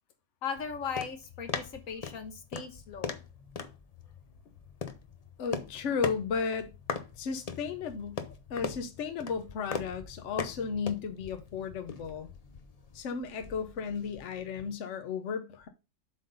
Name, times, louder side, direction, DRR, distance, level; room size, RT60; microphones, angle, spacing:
voice 1, 0.4-3.2, left 6 dB, 85° left, 1.6 m, -38 dB
sound 1, 0.5-14.7, left 5 dB, 40° left, 0.6 m, -41 dB
voice 2, 5.4-6.7 7.2-8.2 8.5-12.3 12.9-15.7, left 5 dB, 65° left, 1.1 m, -34 dB
7.6 x 3.9 x 5.3 m
omnidirectional pair, 1.4 m